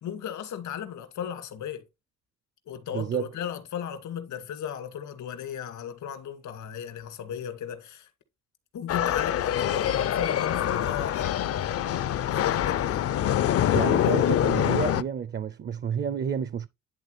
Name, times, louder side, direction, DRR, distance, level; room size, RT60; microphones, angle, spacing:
voice 1, 0.0-1.8 2.7-8.1 8.7-11.4 12.2-13.1 14.0-14.1, left 9 dB, 80° left, 2.1 m, -35 dB
voice 2, 2.9-3.2 13.7-16.7, right 7 dB, 35° right, 0.5 m, -30 dB
sound 1, 8.9-15.0, left 11 dB, 50° left, 0.5 m, -25 dB
10.5 x 3.6 x 3.3 m
cardioid pair, 90°, 30 cm